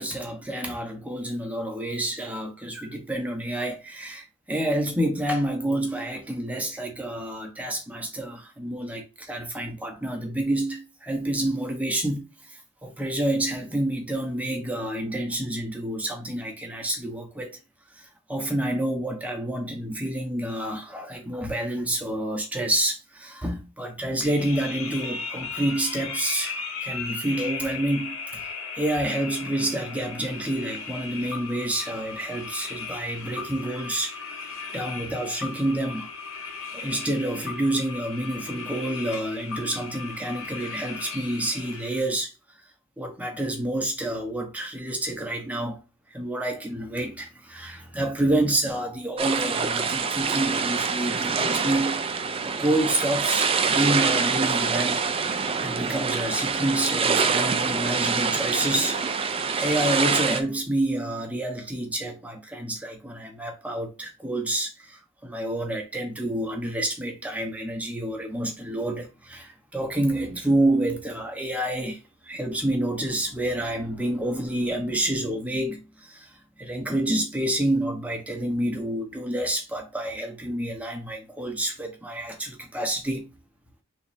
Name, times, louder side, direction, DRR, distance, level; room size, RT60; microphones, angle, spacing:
voice 1, 0.0-17.6 17.9-34.2 34.4-36.1 36.7-42.3 43.0-45.8 46.1-52.0 52.4-83.3, right 1 dB, 5° right, 0.7 m, -28 dB
sound 1, 24.2-42.1, left 5 dB, 70° left, 0.9 m, -36 dB
sound 2, 49.2-60.4, right 5 dB, 25° right, 0.3 m, -25 dB
3.5 x 3.0 x 4.2 m
head